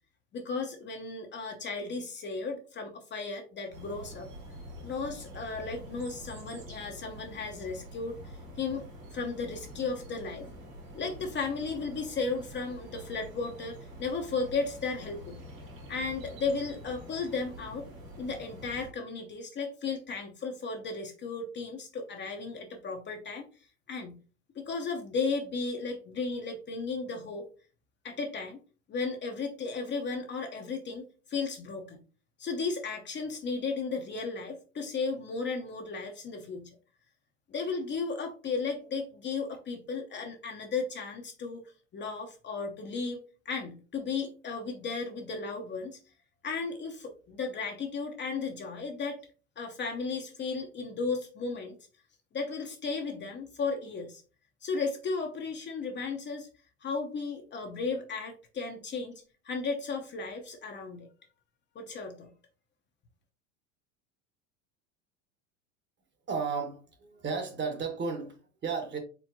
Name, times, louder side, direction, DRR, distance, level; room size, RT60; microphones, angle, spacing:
voice 1, 0.3-4.3 4.8-10.5 10.9-15.4 15.9-17.9 18.2-23.5 23.9-24.2 24.5-27.5 28.0-28.6 28.9-32.0 32.4-36.7 37.5-41.6 41.9-43.2 43.5-46.0 46.4-49.2 49.6-51.8 52.3-54.2 54.6-56.5 56.8-61.1 61.7-62.3, left 4 dB, 30° left, 3 dB, 0.7 m, -35 dB
sound 1, 3.7-18.9, equal, 85° right, 2.3 m, -46 dB
voice 2, 66.3-69.0, right 5 dB, 30° right, 5 dB, 1.2 m, -34 dB
4.5 x 3.4 x 2.7 m, 0.36 s
hypercardioid pair, 100°, 39 cm